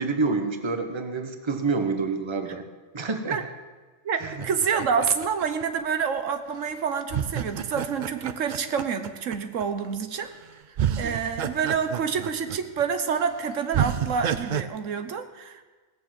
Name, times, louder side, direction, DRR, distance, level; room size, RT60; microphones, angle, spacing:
voice 1, 0.0-2.7 2.9-3.4 4.2-4.3, right 4 dB, 25° right, 7 dB, 1.1 m, -27 dB
voice 2, 4.0-10.3 11.0-15.6, right 6 dB, 80° right, 9 dB, 1.3 m, -28 dB
sound 1, 4.2-6.2 7.1-9.6 10.3-10.4 10.8-12.8 13.2-13.3 13.7-14.6, right 9 dB, 60° right, 0.5 m, -30 dB
18.0 x 7.1 x 7.6 m, 1.3 s
omnidirectional pair, 1.3 m